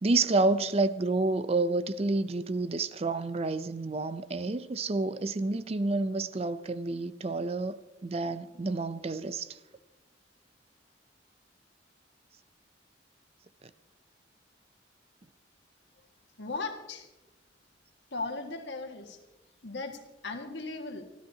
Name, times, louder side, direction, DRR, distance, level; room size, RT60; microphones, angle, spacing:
voice 1, 0.0-9.6, right 3 dB, 35° right, 0.5 m, -29 dB
voice 2, 16.4-17.1 18.1-19.2 19.6-21.1, left 3 dB, 70° left, 1.8 m, -37 dB
26.5 x 13.5 x 2.8 m
head